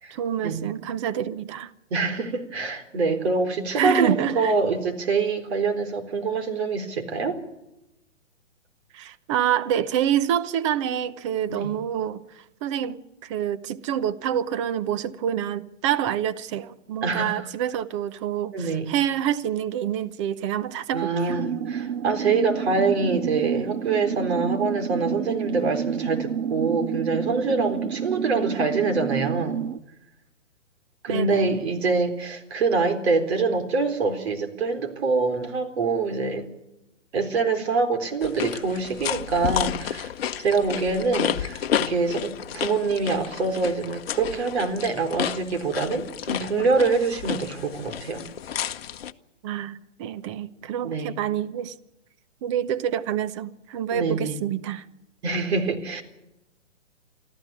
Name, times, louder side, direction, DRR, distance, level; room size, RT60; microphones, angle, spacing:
voice 1, 0.1-1.7 3.7-4.5 8.9-21.4 31.1-31.6 49.4-51.7 52.4-54.8, right 10 dB, 25° right, 0.7 m, -27 dB
voice 2, 1.9-7.4 11.5-11.7 17.0-17.5 18.5-18.9 20.9-29.7 31.0-36.5 37.1-40.1 40.4-48.2 50.8-51.2 53.9-54.4 55.2-56.0, right 4 dB, 55° right, 4.0 m, -25 dB
sound 1, 21.3-29.8, right 8 dB, 80° right, 0.7 m, -29 dB
sound 2, 38.2-49.1, left 10 dB, 50° left, 1.0 m, -31 dB
24.5 x 14.0 x 8.4 m
hypercardioid pair, 140°, 38 cm